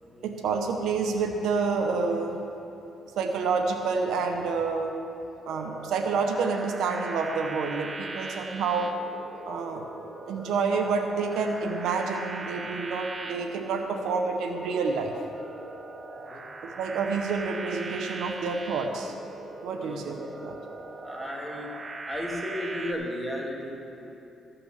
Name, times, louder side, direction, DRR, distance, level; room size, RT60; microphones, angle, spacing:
voice 1, 0.2-2.4 3.2-4.9 5.5-8.9 9.5-9.8 10.3-15.1 16.8-19.1 19.6-20.6, right 4 dB, 80° right, 4 dB, 0.9 m, -28 dB
sound 1, 5.5-22.9, right 3 dB, 35° right, 0.9 m, -40 dB
voice 2, 21.0-21.7 22.0-24.1, equal, 5° right, -2 dB, 2.2 m, -34 dB
14.0 x 5.8 x 6.5 m, 2.9 s
cardioid pair, 90°, 0 cm